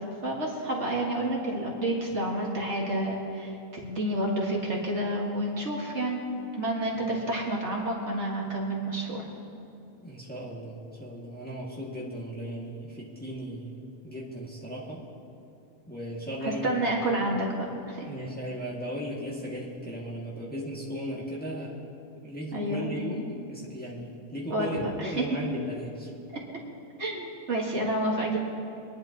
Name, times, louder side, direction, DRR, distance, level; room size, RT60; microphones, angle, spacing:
voice 1, 0.2-3.6 3.8-6.2 6.5-9.3 16.4-18.1 22.5-22.9 24.5-25.2 27.0-28.4, right 1 dB, 55° right, -2 dB, 1.9 m, -29 dB
voice 2, 10.0-15.0 15.9-16.9 18.0-21.9 22.2-26.1, equal, 5° left, -5 dB, 1.9 m, -36 dB
23.5 x 10.5 x 2.9 m, 2.7 s
omnidirectional pair, 1.5 m